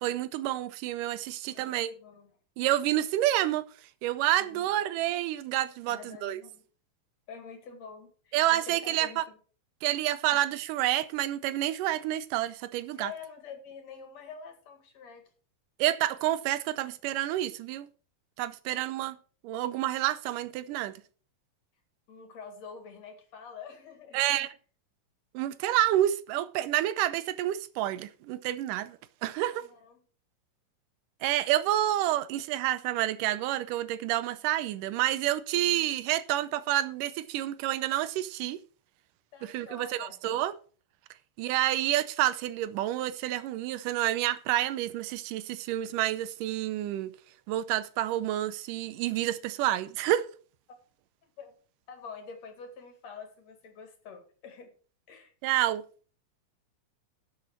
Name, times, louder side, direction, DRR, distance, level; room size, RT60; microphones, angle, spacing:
voice 1, 0.0-1.9 2.6-3.7 4.0-6.4 8.3-9.3 9.8-13.1 15.8-17.9 18.4-19.2 19.4-20.9 24.1-24.5 25.3-29.7 31.2-38.6 39.4-40.5 41.4-47.1 47.5-50.3 55.4-55.8, right 13 dB, 85° right, 2.3 m, -29 dB
voice 2, 1.5-2.3 4.4-4.7 5.9-6.6 7.3-9.4 10.3-10.4 13.0-15.3 22.1-24.3 29.5-30.0 39.3-40.2 50.7-50.8 51.2-51.5 51.9-54.7 55.1-55.3, left 6 dB, 60° left, 3.0 m, -47 dB
11.5 x 7.7 x 4.6 m
omnidirectional pair, 3.7 m